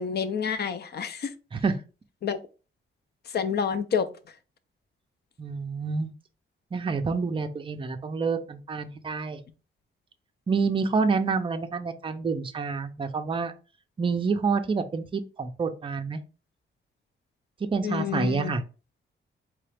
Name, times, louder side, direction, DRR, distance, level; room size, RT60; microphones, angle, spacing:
voice 1, 0.0-1.3 2.2-2.4 3.3-4.1 17.8-18.5, left 6 dB, 50° left, 0.5 m, -28 dB
voice 2, 5.4-6.1 6.7-9.4 10.5-13.5 14.0-16.2 17.6-18.6, right 4 dB, 25° right, 0.4 m, -28 dB
3.9 x 3.2 x 3.4 m
wide cardioid pair, 170°, 21 cm